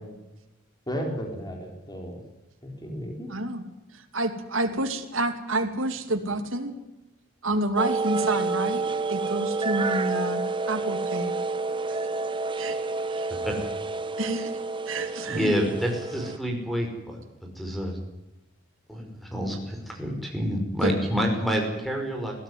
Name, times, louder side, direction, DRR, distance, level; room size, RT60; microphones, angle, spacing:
voice 1, 0.9-2.2 2.6-3.3, equal, 20° left, 2 dB, 4.3 m, -34 dB
voice 2, 3.3-3.6 3.9-6.7 7.4-8.8 9.1-11.3 12.6-12.8 13.1-13.3 14.2-14.5 14.9-15.5 20.8-20.9, right 2 dB, 75° right, 5 dB, 2.7 m, -29 dB
sound 1, 7.8-16.4, right 3 dB, 25° right, 1.1 m, -29 dB
voice 3, 15.3-17.2 17.6-18.0 18.9-22.3, equal, ahead, 2 dB, 5.4 m, -28 dB
21.5 x 16.0 x 9.6 m, 0.97 s
head